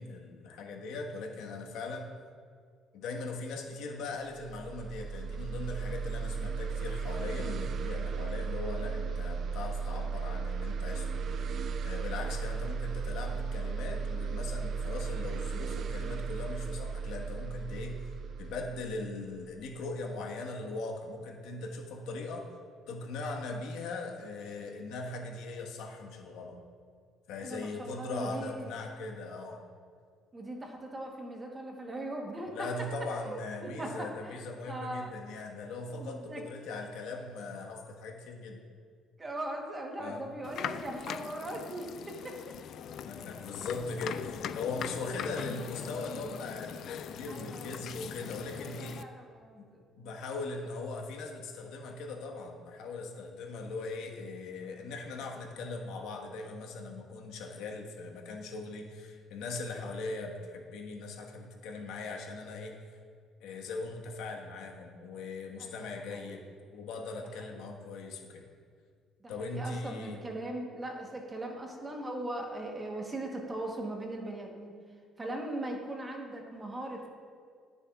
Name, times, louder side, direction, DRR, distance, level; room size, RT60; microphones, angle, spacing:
voice 1, 0.0-2.1 2.9-11.3 11.8-18.0 18.4-22.5 22.9-26.6 27.3-29.6 32.5-38.6 40.0-40.2 43.1-49.0 49.6-49.7 50.0-63.0 63.4-66.4 66.7-68.4 69.3-70.2, left 3 dB, 75° left, 1 dB, 1.3 m, -40 dB
sound 1, 4.3-19.7, right 5 dB, 40° right, 0.4 m, -35 dB
voice 2, 27.4-28.7 30.3-35.1 35.9-36.4 39.2-42.5 47.3-47.9 48.6-49.8 65.6-66.4 67.4-67.6 69.2-74.8 75.2-77.1, right 1 dB, 15° right, 1 dB, 1.1 m, -40 dB
sound 2, 40.4-49.0, left 8 dB, 50° left, 0.3 m, -41 dB
20.5 x 6.9 x 2.4 m, 2.1 s
cardioid pair, 165°, 0 cm